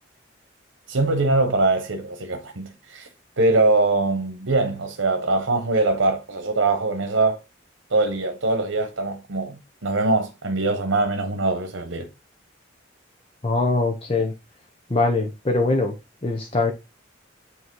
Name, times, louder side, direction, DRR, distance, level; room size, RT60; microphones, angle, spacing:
voice 1, 0.9-3.1 3.4-7.4 7.9-12.1, right 2 dB, 85° right, 1.1 m, -22 dB
voice 2, 13.4-14.3 14.9-15.9 16.2-16.7, left 3 dB, 30° left, 0.9 m, -22 dB
8.4 x 3.1 x 4.6 m
head